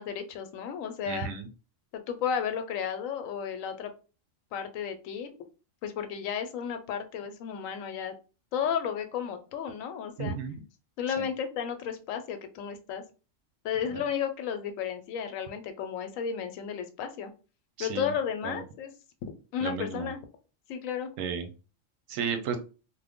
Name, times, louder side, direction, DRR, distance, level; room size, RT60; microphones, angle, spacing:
voice 1, 0.0-1.3 2.1-3.9 4.5-5.3 5.8-8.1 8.5-10.3 11.0-13.0 13.6-17.3 17.8-18.9 19.5-20.2 20.7-21.1, left 7 dB, 85° left, 8 dB, 1.0 m, -33 dB
voice 2, 1.1-1.5 10.2-10.6 11.2-11.3 13.9-14.0 17.8-18.1 18.4-18.6 19.6-20.1 21.2-21.5 22.1-22.6, right 6 dB, 85° right, 6 dB, 1.0 m, -33 dB
3.1 x 2.1 x 3.5 m, 0.34 s
omnidirectional pair, 1.3 m